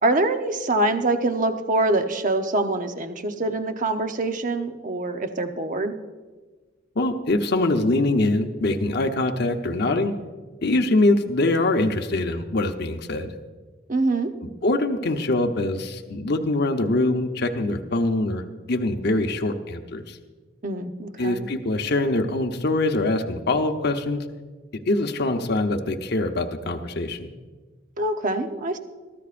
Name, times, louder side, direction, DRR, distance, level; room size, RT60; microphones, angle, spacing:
voice 1, 0.0-5.9 13.9-14.3 20.6-21.5 28.0-28.8, right 2 dB, 40° right, 6 dB, 0.9 m, -24 dB
voice 2, 7.0-10.1 10.6-13.3 14.6-18.4 18.7-20.2 21.2-24.2 24.9-27.3, left 2 dB, 55° left, 4 dB, 0.9 m, -23 dB
22.0 x 14.0 x 2.5 m, 1.4 s
head